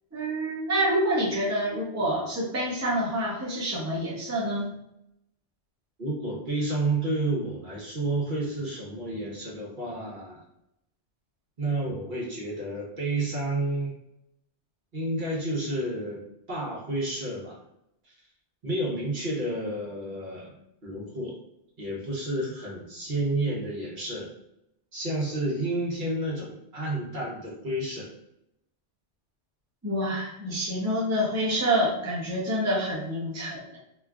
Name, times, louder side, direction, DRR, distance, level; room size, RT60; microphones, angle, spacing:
voice 1, 0.1-4.7 29.8-33.8, right 1 dB, 20° right, -5 dB, 0.6 m, -27 dB
voice 2, 6.0-10.4 11.6-13.9 14.9-17.6 18.0-18.1 18.6-21.3 21.8-24.3 24.9-28.1, right 2 dB, 50° right, -5 dB, 1.0 m, -30 dB
3.1 x 2.4 x 2.3 m, 0.80 s
omnidirectional pair, 1.2 m